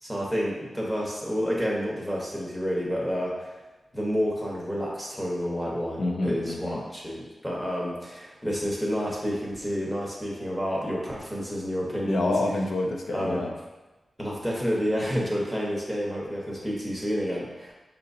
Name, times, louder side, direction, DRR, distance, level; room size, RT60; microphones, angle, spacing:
voice 1, 0.0-3.5 3.9-12.3 13.1-13.4 14.2-17.7, equal, 5° left, -4 dB, 0.9 m, -29 dB
voice 2, 6.0-6.8 12.0-13.5, left 2 dB, 70° left, 1 dB, 0.5 m, -28 dB
5.0 x 2.8 x 2.6 m, 1.1 s
wide cardioid pair, 145°, 0 cm